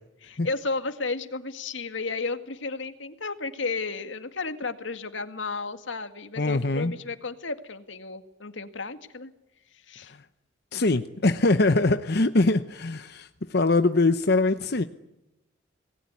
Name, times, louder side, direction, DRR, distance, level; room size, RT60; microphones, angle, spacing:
voice 1, 0.2-9.3 9.9-10.1, left 3 dB, 85° left, 9 dB, 2.1 m, -33 dB
voice 2, 6.4-6.9 10.7-14.8, left 2 dB, 55° left, 9 dB, 0.9 m, -23 dB
27.0 x 20.0 x 9.7 m, 0.93 s
head